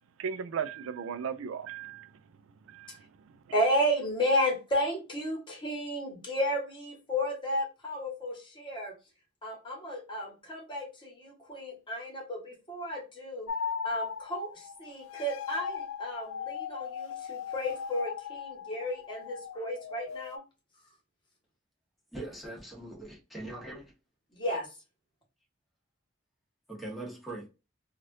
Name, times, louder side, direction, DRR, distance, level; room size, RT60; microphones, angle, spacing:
voice 1, 0.2-2.1 2.7-2.9, right 7 dB, 80° right, 0.3 m, -36 dB
voice 2, 3.5-8.9 9.4-13.5 13.8-20.4 24.3-24.8, equal, 25° left, 1.3 m, -33 dB
sound 1, 13.5-20.4, left 6 dB, 85° left, 0.3 m, -38 dB
voice 3, 22.1-23.9 26.7-27.5, right 2 dB, ahead, 1.1 m, -41 dB
3.3 x 2.4 x 2.6 m
head